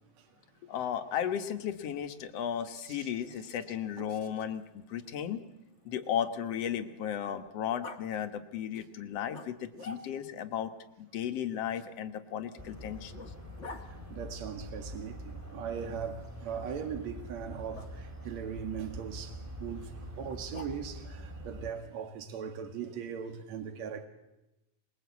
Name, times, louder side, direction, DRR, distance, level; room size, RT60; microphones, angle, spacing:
voice 1, 0.7-5.4 5.9-10.7 11.0-13.1, left 9 dB, 60° left, 2.2 m, -35 dB
Growling, 3.7-7.1 7.8-8.0 9.3-10.4 11.7-13.9 15.7-16.4 17.7-17.9 20.2-21.1, left 3 dB, 30° left, 1.4 m, -50 dB
sound 1, 12.6-21.7, equal, 5° right, 2.5 m, -44 dB
voice 2, 13.9-24.1, right 7 dB, 65° right, 3.1 m, -39 dB
26.5 x 21.0 x 8.3 m
omnidirectional pair, 3.4 m